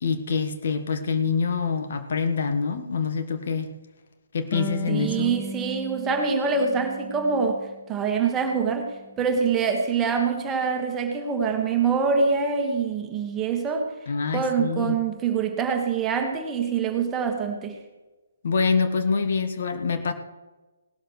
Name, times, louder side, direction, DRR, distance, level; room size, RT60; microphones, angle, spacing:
voice 1, 0.0-3.7 4.3-5.3 14.1-14.9 18.4-20.1, left 5 dB, 50° left, 7 dB, 1.4 m, -25 dB
Harp, 4.5-7.9 8.3-9.3, equal, 25° left, 3.0 m, -38 dB
voice 2, 4.9-13.9 14.3-17.7, right 5 dB, 15° right, 3 dB, 1.6 m, -25 dB
18.5 x 12.5 x 3.2 m, 1.2 s
figure-of-eight pair, 135°, 0 cm